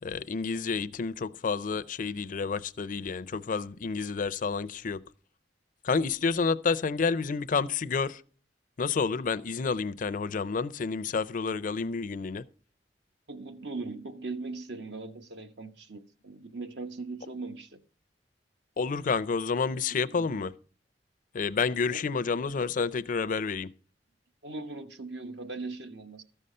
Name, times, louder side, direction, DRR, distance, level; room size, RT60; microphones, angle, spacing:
voice 1, 0.0-5.0 5.8-8.2 8.8-12.4 18.8-20.5 21.3-23.7, left 5 dB, 50° left, 0.5 m, -29 dB
voice 2, 13.3-17.8 20.1-20.4 21.9-22.0 24.4-26.2, right 3 dB, 70° right, 1.0 m, -39 dB
13.5 x 5.5 x 6.5 m
head